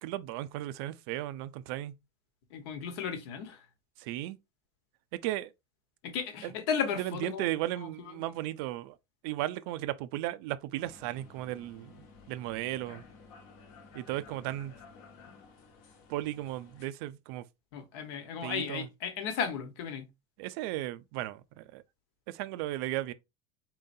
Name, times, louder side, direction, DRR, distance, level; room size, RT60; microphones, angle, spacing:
voice 1, 0.0-1.9 4.0-4.4 5.2-5.5 6.4-6.5 7.0-8.9 9.2-11.9 12.3-13.0 13.9-14.7 16.1-17.4 18.4-18.9 20.4-21.8 22.3-23.1, right 15 dB, 55° right, 0.4 m, -35 dB
voice 2, 2.5-3.6 6.0-7.5 7.8-7.9 17.7-20.1, left 7 dB, 70° left, 1.2 m, -34 dB
sound 1, 10.8-16.9, left 4 dB, 55° left, 1.1 m, -54 dB
4.5 x 3.8 x 2.6 m
cardioid pair, 175°, 14 cm